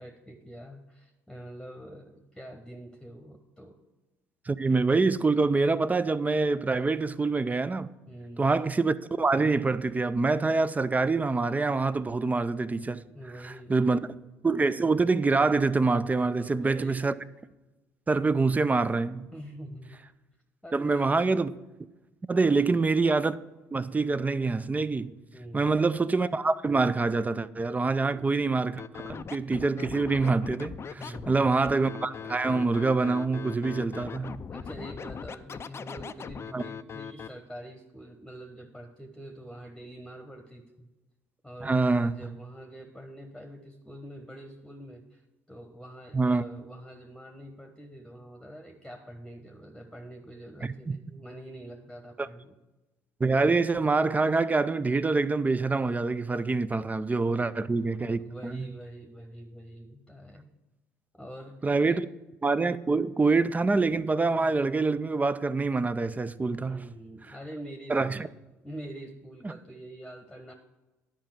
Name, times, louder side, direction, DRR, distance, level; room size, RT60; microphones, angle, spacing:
voice 1, 0.0-3.8 8.1-8.7 13.1-14.1 16.3-17.1 19.3-20.0 20.6-21.3 22.5-22.8 25.3-25.8 31.0-31.5 33.6-34.1 34.5-40.9 41.4-45.2 45.5-52.6 56.7-56.8 57.2-57.5 58.2-60.5 61.1-62.0 66.5-68.3 68.6-70.5, right 1 dB, 5° left, 1.1 m, -45 dB
voice 2, 4.5-7.9 8.4-13.0 13.4-14.0 14.4-17.1 18.1-19.3 20.7-21.5 22.2-23.4 23.7-25.1 25.5-31.0 31.3-34.4 36.5-36.6 41.6-42.3 46.1-46.4 50.6-51.0 52.2-52.3 53.2-58.7 61.6-62.0 62.4-66.9 67.9-68.3 69.4-69.5, right 3 dB, 20° right, 0.5 m, -25 dB
Scratching (performance technique), 28.8-37.3, left 6 dB, 35° left, 0.5 m, -40 dB
10.5 x 5.1 x 7.2 m
hypercardioid pair, 60°, 8 cm